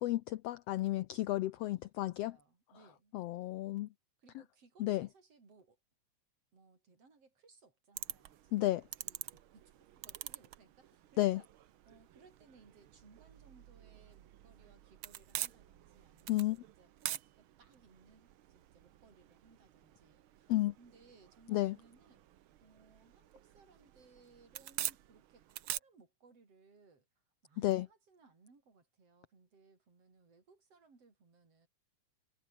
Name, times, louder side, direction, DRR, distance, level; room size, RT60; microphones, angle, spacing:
voice 1, 0.0-2.4 3.1-3.9 4.8-5.1 8.5-8.8 11.2-11.4 16.3-16.6 20.5-20.7 21.5-21.7 27.6-27.8, left 16 dB, 90° left, 1.3 m, -32 dB
voice 2, 1.5-3.2 4.2-5.8 6.5-11.5 11.8-27.1 27.4-31.7, right 4 dB, 50° right, 6.8 m, -65 dB
sound 1, 7.9-25.8, right 12 dB, 75° right, 1.2 m, -47 dB
omnidirectional pair, 3.5 m